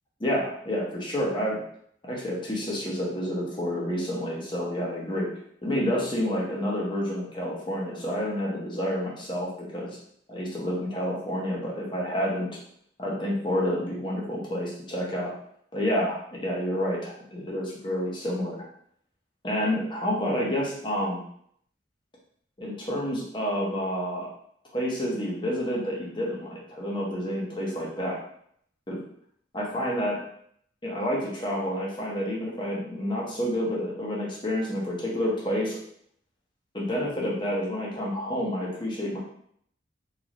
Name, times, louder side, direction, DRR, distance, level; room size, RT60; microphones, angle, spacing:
voice 1, 0.2-1.6 2.0-5.3 5.6-10.0 10.3-12.5 13.0-15.3 15.7-18.6 19.4-21.2 22.6-24.3 24.7-28.2 28.9-29.0 29.5-30.2 30.8-35.8 36.7-39.2, equal, 25° left, -3 dB, 0.9 m, -29 dB
4.1 x 2.7 x 3.0 m, 0.65 s
head